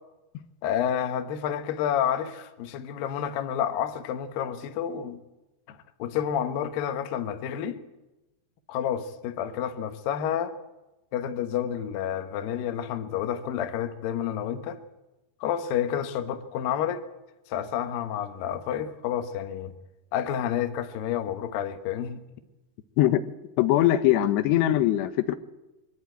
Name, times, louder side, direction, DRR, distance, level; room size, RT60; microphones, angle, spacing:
voice 1, 0.6-5.2 5.7-7.8 8.7-10.5 11.1-14.8 15.4-17.0 17.5-19.7 20.1-22.2, left 9 dB, 70° left, 2.7 m, -29 dB
voice 2, 23.6-25.3, left 13 dB, 85° left, 3.0 m, -21 dB
23.0 x 14.0 x 9.3 m
omnidirectional pair, 4.8 m